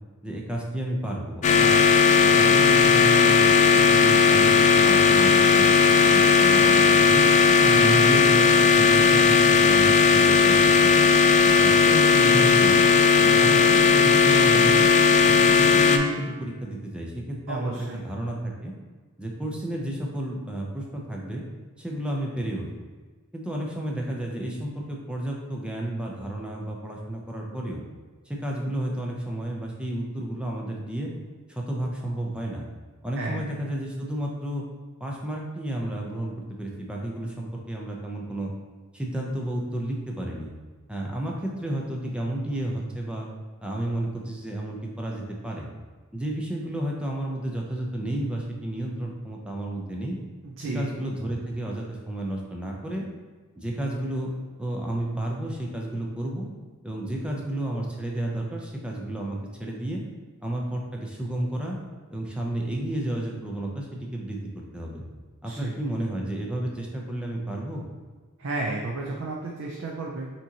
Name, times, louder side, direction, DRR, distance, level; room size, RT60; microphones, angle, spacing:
voice 1, 0.2-1.8 2.2-7.3 7.7-11.1 11.6-12.8 13.2-14.8 15.2-18.7 19.2-21.4 21.8-22.7 23.3-27.8 28.3-31.1 31.5-32.6 33.0-34.6 35.0-38.5 38.9-40.5 40.9-43.3 43.6-45.7 46.1-50.2 50.6-53.0 53.6-54.3 54.6-56.5 56.8-60.0 60.4-61.8 62.1-64.4 64.7-65.0 65.4-67.8, right 1 dB, 5° right, -2 dB, 0.6 m, -31 dB
sound 1, 1.4-16.0, left 5 dB, 35° left, 0.3 m, -17 dB
voice 2, 7.6-8.0 17.5-18.0 33.2-33.4 50.4-50.9 65.4-65.7 68.4-70.3, right 2 dB, 60° right, -2 dB, 0.5 m, -32 dB
5.9 x 2.9 x 2.9 m, 1.4 s
head